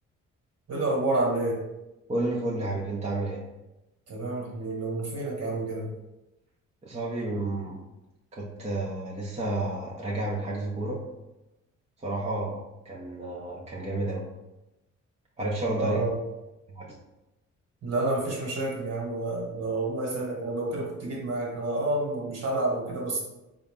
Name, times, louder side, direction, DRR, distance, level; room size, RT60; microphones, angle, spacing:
voice 1, 0.7-1.6 4.1-5.9 15.8-16.2 17.8-23.2, right 2 dB, 55° right, -2 dB, 1.4 m, -29 dB
voice 2, 2.1-3.4 6.8-7.8 8.3-11.0 12.0-14.3 15.4-16.0 16.7-16.9, right 2 dB, 20° right, -4 dB, 0.7 m, -31 dB
3.8 x 2.3 x 3.6 m, 0.98 s
cardioid pair, 90°, 30 cm